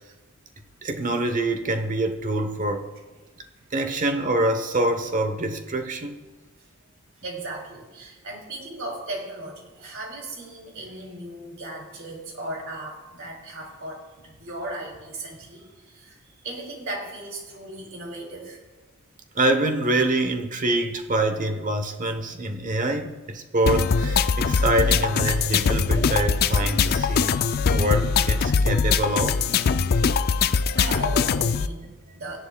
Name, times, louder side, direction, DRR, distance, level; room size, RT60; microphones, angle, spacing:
voice 1, 0.8-2.9 3.7-6.2 19.3-27.4 27.7-29.4, right 1 dB, 40° right, 7 dB, 0.9 m, -25 dB
voice 2, 7.2-18.6 30.8-32.4, right 2 dB, 65° right, 0 dB, 2.9 m, -36 dB
sound 1, 23.7-31.7, left 5 dB, 50° left, 0.4 m, -22 dB
17.0 x 10.5 x 2.3 m, 1.3 s
head